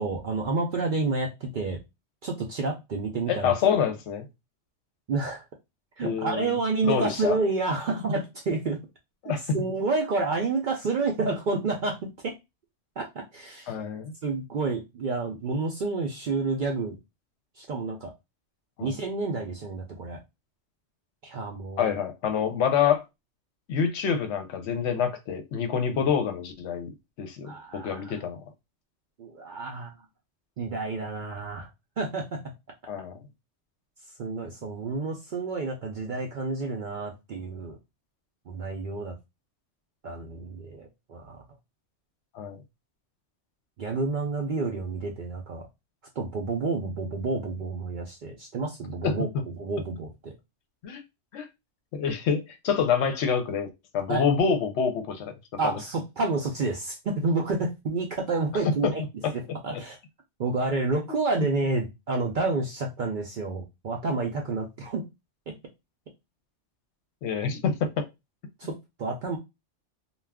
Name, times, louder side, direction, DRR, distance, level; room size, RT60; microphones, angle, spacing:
voice 1, 0.0-1.8 2.2-3.5 5.1-5.4 6.0-8.8 9.5-12.3 13.0-13.7 14.2-17.0 17.6-18.1 18.8-20.2 21.2-21.9 27.4-28.2 29.2-29.9 30.6-31.7 32.0-32.5 34.2-37.8 38.5-39.1 40.0-41.4 43.8-45.7 46.2-49.3 49.6-50.3 54.1-54.2 55.6-59.0 59.6-60.0 60.4-65.0 65.5-65.6 68.6-69.4, right 3 dB, 60° right, 0.5 m, -29 dB
voice 2, 3.3-4.3 6.0-6.6 6.8-7.4 9.2-9.6 13.7-14.1 18.8-19.0 21.8-23.0 23.7-28.4 32.9-33.2 42.3-42.6 49.0-49.3 50.8-51.0 51.3-51.5 51.9-55.3 55.6-55.7 58.8-58.9 59.2-59.3 59.7-59.8 67.2-68.0 68.6-68.7, left 7 dB, 70° left, 0.8 m, -27 dB
2.3 x 2.3 x 3.3 m
omnidirectional pair, 1.3 m